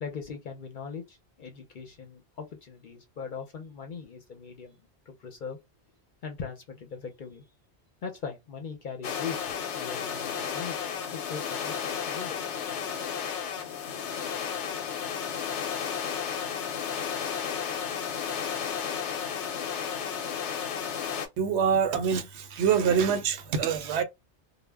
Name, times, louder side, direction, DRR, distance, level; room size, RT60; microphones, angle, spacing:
voice 1, 0.0-4.8 5.1-5.6 6.2-7.4 8.0-11.7 12.0-12.4, left 6 dB, 55° left, 0.6 m, -40 dB
sound 1, 9.0-21.3, left 7 dB, 85° left, 0.9 m, -33 dB
voice 2, 21.4-24.0, right 7 dB, 75° right, 0.8 m, -25 dB
2.1 x 2.0 x 3.3 m
omnidirectional pair, 1.2 m